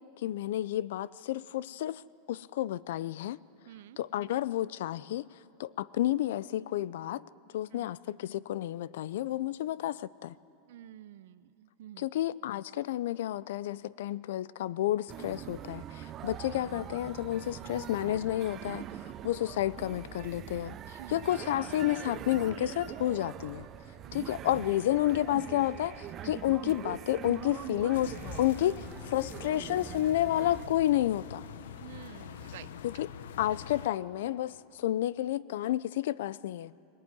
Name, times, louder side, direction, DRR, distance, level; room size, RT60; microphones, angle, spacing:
voice 1, 0.2-2.0 2.3-3.4 4.0-5.3 5.6-7.2 7.5-10.3 12.0-18.8 19.2-23.7 24.1-31.5 32.8-33.1 33.4-36.7, left 13 dB, 75° left, 21 dB, 0.5 m, -31 dB
voice 2, 3.7-4.0 7.7-7.9 10.7-12.1 21.0-21.3 24.1-24.5 31.8-32.7, right 13 dB, 70° right, 16 dB, 0.6 m, -49 dB
sound 1, 15.1-30.7, right 10 dB, 25° right, 0.6 m, -43 dB
sound 2, 27.9-33.9, left 9 dB, 90° left, 0.9 m, -45 dB
21.0 x 19.0 x 9.6 m, 2.7 s
supercardioid pair, 160°, 0 cm